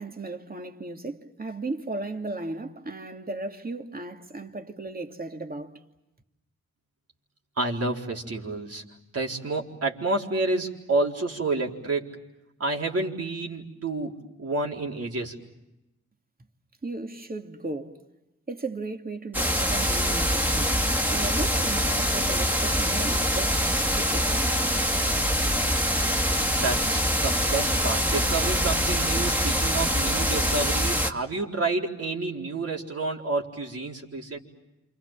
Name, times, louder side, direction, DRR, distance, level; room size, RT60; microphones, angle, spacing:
voice 1, 0.0-5.8 16.8-18.0 18.5-20.8 21.1-23.6 23.9-24.5, right 2 dB, 30° right, 2.7 m, -36 dB
voice 2, 7.6-8.8 9.1-12.2 12.6-15.3 26.6-34.4, right 3 dB, 55° right, 4.4 m, -29 dB
sound 1, 19.3-31.1, equal, 5° right, 2.6 m, -24 dB
28.5 x 27.0 x 7.5 m
cardioid pair, 50°, 29 cm